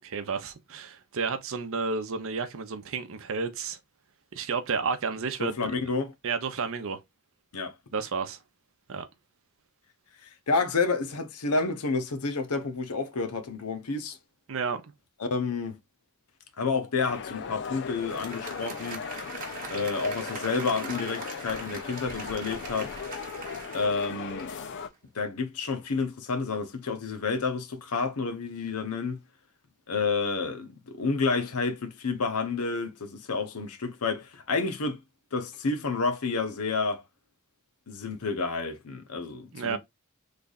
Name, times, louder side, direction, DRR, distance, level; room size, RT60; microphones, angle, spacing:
voice 1, 0.1-3.8 4.3-5.8 6.2-7.0 7.9-8.4 8.9-9.0 14.5-14.8 39.5-39.8, right 5 dB, 65° right, 0.7 m, -31 dB
voice 2, 5.4-6.1 7.5-7.7 10.2-14.2 15.2-15.8 16.6-19.1 19.7-22.9 23.7-24.5 25.1-29.2 29.9-35.0 35.3-37.0 37.9-39.8, left 4 dB, 85° left, 0.8 m, -30 dB
sound 1, 17.0-24.9, left 6 dB, 55° left, 0.4 m, -38 dB
Applause, 17.9-24.9, right 4 dB, 40° right, 1.1 m, -42 dB
3.3 x 2.4 x 3.9 m
head